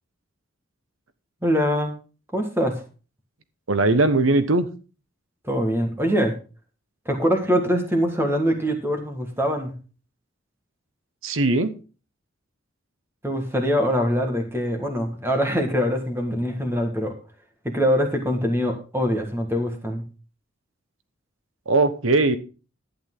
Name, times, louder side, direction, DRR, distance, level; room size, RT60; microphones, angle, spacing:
voice 1, 1.4-1.9 2.3-2.8 5.4-6.3 7.0-9.7 13.2-17.1 17.6-20.0, equal, 10° right, 5 dB, 1.7 m, -23 dB
voice 2, 3.7-4.7 11.2-11.7 21.7-22.4, right 2 dB, 85° right, 11 dB, 1.1 m, -19 dB
11.5 x 8.8 x 3.8 m, 0.34 s
head